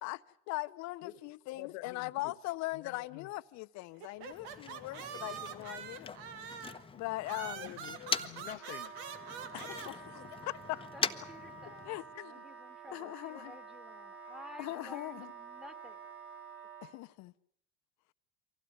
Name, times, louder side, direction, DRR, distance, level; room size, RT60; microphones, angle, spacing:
voice 1, 0.0-6.2 6.9-7.7 9.5-10.9 11.8-12.4 12.9-13.6 14.6-15.3 16.8-17.3, left 20 dB, 55° left, 0.9 m, -40 dB
voice 2, 1.5-2.3 2.7-3.3 7.4-8.9, left 17 dB, 75° left, 1.0 m, -47 dB
sound 1, 4.0-6.8 7.2-9.9, right 7 dB, 75° right, 2.1 m, -44 dB
Motor vehicle (road), 4.1-8.6 8.9-12.2, left 5 dB, 15° left, 1.0 m, -42 dB
voice 3, 5.0-5.7 10.9-12.0 12.2-16.0, equal, ahead, 1.8 m, -53 dB
Wind instrument woodwind instrument, 8.5-16.9, right 4 dB, 40° right, 5.8 m, -50 dB
24.5 x 16.0 x 9.6 m
supercardioid pair, 105°, 33 cm